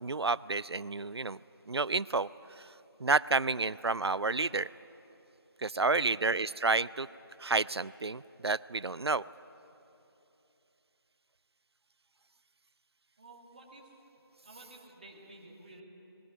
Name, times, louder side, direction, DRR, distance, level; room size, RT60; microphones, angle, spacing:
voice 1, 0.0-1.4 1.7-2.3 2.6-2.7 3.0-4.7 5.6-7.1 7.4-9.2, right 3 dB, 90° right, 20 dB, 0.5 m, -30 dB
voice 2, 13.2-13.9 14.4-15.8, right 2 dB, 20° right, -1 dB, 2.2 m, -53 dB
20.5 x 15.5 x 9.3 m, 3.0 s
figure-of-eight pair, 170°, 13 cm